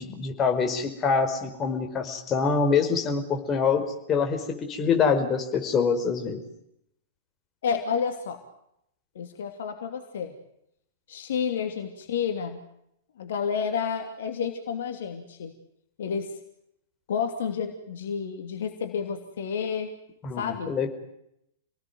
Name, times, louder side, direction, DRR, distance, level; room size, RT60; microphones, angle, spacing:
voice 1, 0.0-3.8 4.1-6.4 20.2-20.9, left 5 dB, 20° left, 4 dB, 4.9 m, -25 dB
voice 2, 7.6-8.4 9.1-10.4 11.1-12.6 13.2-15.5 16.0-16.3 17.1-19.9 20.4-20.7, left 6 dB, 55° left, 6 dB, 2.9 m, -30 dB
29.0 x 19.5 x 9.5 m, 0.79 s
figure-of-eight pair, 105°, 0 cm